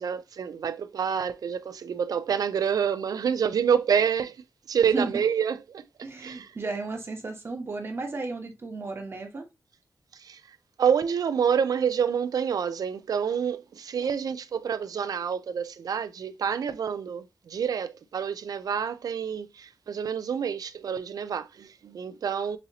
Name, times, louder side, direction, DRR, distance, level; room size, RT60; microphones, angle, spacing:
voice 1, 0.0-4.4 4.7-5.8 6.2-6.5 10.2-10.4 10.8-22.6, right 7 dB, 85° right, 0.4 m, -27 dB
voice 2, 6.0-9.5, right 3 dB, 40° right, 1.0 m, -34 dB
6.9 x 2.8 x 2.7 m
wide cardioid pair, 165°, 6 cm